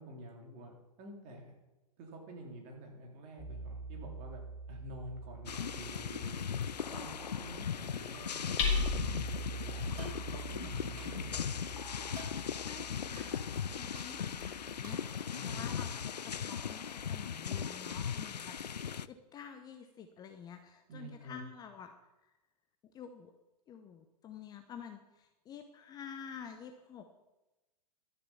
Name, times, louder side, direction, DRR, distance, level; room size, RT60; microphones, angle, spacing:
voice 1, 0.0-1.5 2.0-6.4 6.9-9.9 10.3-11.7 15.3-16.0 20.9-21.4, right 1 dB, 35° right, 1 dB, 3.2 m, -49 dB
Hammer, 3.4-15.1, left 2 dB, 45° left, 3.2 m, -41 dB
sound 1, 5.5-19.1, left 7 dB, 75° left, 0.5 m, -38 dB
sound 2, 10.0-10.2 11.0-11.2 12.1-12.4 13.2-13.3 13.9-14.1 14.8-15.1, right 1 dB, 65° right, 5.4 m, -48 dB
voice 2, 12.6-13.4 13.7-21.9 22.2-22.3 22.9-23.3 23.7-27.2, left 7 dB, 20° left, 7 dB, 0.7 m, -49 dB
12.5 x 7.0 x 7.1 m, 1.0 s
figure-of-eight pair, 110°, 21 cm